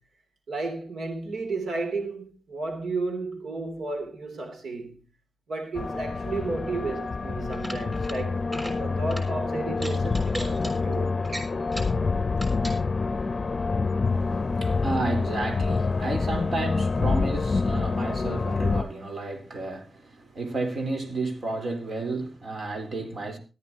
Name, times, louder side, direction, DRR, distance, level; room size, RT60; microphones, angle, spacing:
voice 1, 0.5-5.0 5.5-8.4 8.8-11.2, right 3 dB, 85° right, 3.2 m, -33 dB
sound 1, 5.8-18.8, left 4 dB, 45° left, 0.6 m, -27 dB
sound 2, 7.5-8.2 8.4-8.8 9.1-9.3 9.8-10.7 11.2-12.0 12.4-12.8, right 1 dB, 25° right, 6.1 m, -37 dB
voice 2, 14.1-23.4, right 2 dB, 55° right, 4.0 m, -32 dB
18.0 x 13.5 x 2.9 m
cardioid pair, 85°, 0 cm